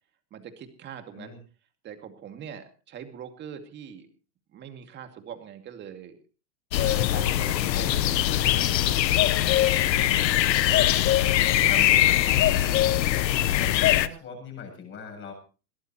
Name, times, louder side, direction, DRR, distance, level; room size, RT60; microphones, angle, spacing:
voice 1, 0.3-1.4 1.8-4.1 4.5-6.2 6.8-8.0 8.5-9.1 9.6-10.2 11.2-11.7 12.0-12.2, right 8 dB, 20° right, 6 dB, 2.4 m, -43 dB
sound 1, 6.7-14.1, left 13 dB, 80° left, 1.1 m, -22 dB
voice 2, 7.7-8.7 11.7-12.4 13.5-15.3, left 5 dB, 20° left, 4 dB, 7.7 m, -40 dB
21.5 x 17.5 x 3.0 m, 0.35 s
supercardioid pair, 155°, 50 cm